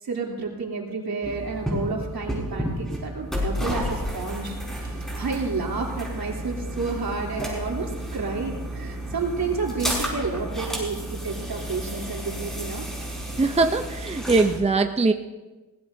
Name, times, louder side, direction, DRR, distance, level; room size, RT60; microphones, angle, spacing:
voice 1, 0.0-11.0 11.2-12.8 13.3-13.4, right 4 dB, 80° right, -2 dB, 3.2 m, -30 dB
sound 1, 1.2-14.6, equal, ahead, 5.0 m, -31 dB
voice 2, 13.4-15.1, right 3 dB, 20° right, 7 dB, 0.6 m, -21 dB
22.0 x 18.5 x 2.7 m, 1.2 s
wide cardioid pair, 120°, 36 cm